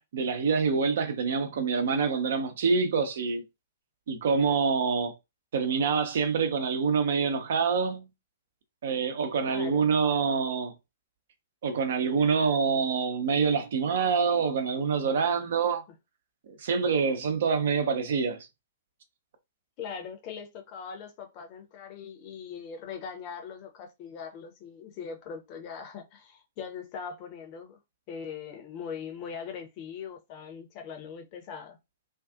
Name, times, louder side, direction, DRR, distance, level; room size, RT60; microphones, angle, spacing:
voice 1, 0.1-3.4 4.1-5.1 5.5-8.1 8.8-10.7 11.6-15.8 16.5-18.5, right 5 dB, 55° right, 0.7 m, -26 dB
voice 2, 9.4-9.9 19.8-27.8 28.1-31.8, left 6 dB, 35° left, 0.7 m, -41 dB
2.6 x 2.4 x 2.4 m
figure-of-eight pair, 110°, 0 cm